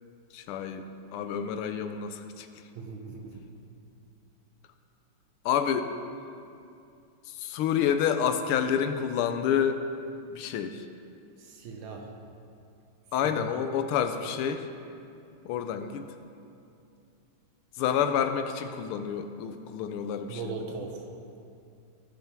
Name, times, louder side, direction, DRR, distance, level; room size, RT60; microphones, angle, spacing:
voice 1, 0.3-2.5 5.4-5.9 7.3-9.8 10.3-10.9 13.1-14.7 15.4-16.1 17.8-20.5, left 8 dB, 85° left, 8 dB, 1.5 m, -28 dB
voice 2, 2.7-3.5 11.4-12.1 13.2-13.5 19.7-19.9 20.3-21.0, right 4 dB, 70° right, 2 dB, 1.5 m, -39 dB
15.5 x 5.6 x 3.4 m, 2.6 s
omnidirectional pair, 2.4 m